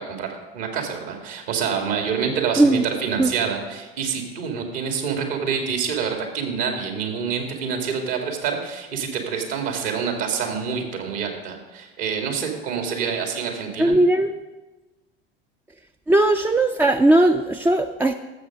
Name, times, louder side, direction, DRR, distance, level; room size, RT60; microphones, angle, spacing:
voice 1, 0.0-14.0, right 6 dB, 65° right, 3 dB, 2.2 m, -27 dB
voice 2, 13.8-14.3 16.1-18.1, right 2 dB, 10° right, 7 dB, 0.4 m, -18 dB
13.0 x 7.4 x 5.2 m, 1.2 s
figure-of-eight pair, 70°, 30 cm